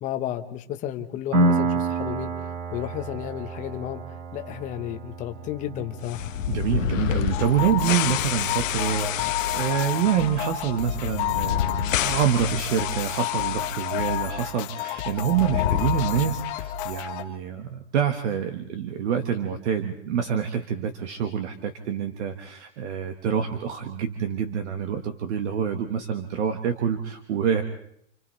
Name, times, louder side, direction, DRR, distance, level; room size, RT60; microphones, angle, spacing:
voice 1, 0.0-4.0 4.3-6.3, left 11 dB, 20° left, 6 dB, 1.0 m, -33 dB
Piano, 1.3-8.7, right 2 dB, 75° right, 7.7 m, -29 dB
sound 1, 6.0-14.2 14.5-14.6 15.2-16.6, left 11 dB, 75° left, 0.9 m, -29 dB
voice 2, 6.5-27.6, right 8 dB, 60° right, 6 dB, 1.6 m, -26 dB
sound 2, 7.3-17.2, left 11 dB, 40° left, 1.7 m, -30 dB
29.5 x 27.0 x 3.3 m, 0.72 s
hypercardioid pair, 160°, 39 cm